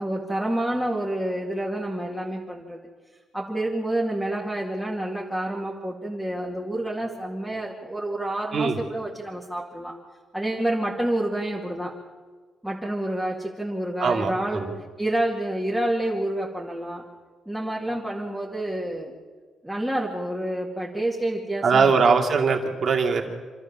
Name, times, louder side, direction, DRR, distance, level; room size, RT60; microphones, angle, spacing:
voice 1, 0.0-2.9 3.3-10.0 10.3-12.0 12.6-14.7 15.0-17.0 17.5-19.2 19.6-21.9, right 1 dB, 5° right, -4 dB, 2.2 m, -28 dB
voice 2, 14.0-14.7 21.6-23.2, right 5 dB, 45° right, 3 dB, 2.4 m, -21 dB
26.5 x 13.5 x 7.3 m, 1.5 s
cardioid pair, 135°, 0 cm